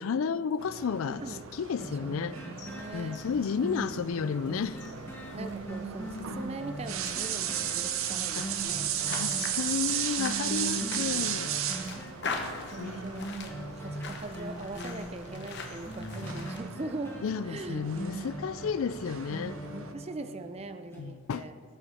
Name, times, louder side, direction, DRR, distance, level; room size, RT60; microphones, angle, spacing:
voice 1, 0.0-1.2 1.5-2.4 2.9-4.8 8.4-8.5 9.1-11.5 12.8-13.0 17.2-19.6 20.9-21.4, left 6 dB, 75° left, 0.4 m, -32 dB
sound 1, 0.6-19.9, right 10 dB, 75° right, 0.7 m, -36 dB
sound 2, 1.8-20.5 20.9-21.0, right 1 dB, 10° left, 2.0 m, -41 dB
voice 2, 1.8-3.2 5.3-8.9 10.4-11.5 12.7-17.2 17.5-17.8 19.7-21.5, right 2 dB, 30° right, 0.4 m, -41 dB
sound 3, 2.5-16.6, left 4 dB, 55° left, 1.2 m, -44 dB
18.5 x 7.0 x 4.3 m
head